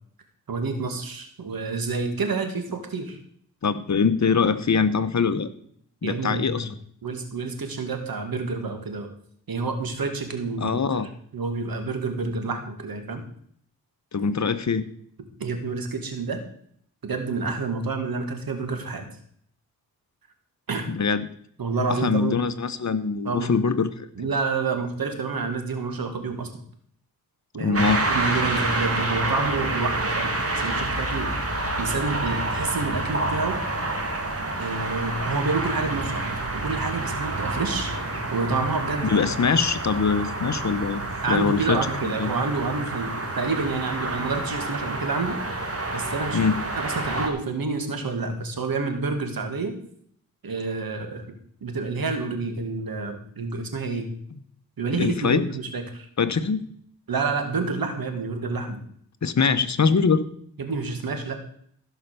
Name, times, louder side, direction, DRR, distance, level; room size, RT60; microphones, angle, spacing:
voice 1, 0.5-3.2 6.0-6.6 7.0-9.1 9.5-11.0 11.3-13.2 15.4-16.4 17.0-19.1 20.7-20.9 21.6-22.4 23.2-23.5 24.2-26.5 27.5-27.8 28.1-31.3 31.8-33.5 34.6-37.9 38.3-39.2 41.2-45.4 45.9-46.4 46.8-49.7 50.4-51.2 51.6-54.1 54.8-56.1 57.1-58.8 60.6-61.4, right 4 dB, 70° right, 6 dB, 2.4 m, -28 dB
voice 2, 3.6-5.5 6.0-6.7 10.6-11.1 14.1-14.9 20.9-21.3 21.9-24.3 27.6-28.1 39.0-42.3 46.3-46.6 54.9-55.5 56.2-56.7 59.2-60.2, left 5 dB, 50° left, 12 dB, 1.0 m, -23 dB
sound 1, 27.7-47.3, right 2 dB, 40° right, 2.8 m, -28 dB
15.5 x 5.8 x 6.8 m, 0.63 s
cardioid pair, 65°, 37 cm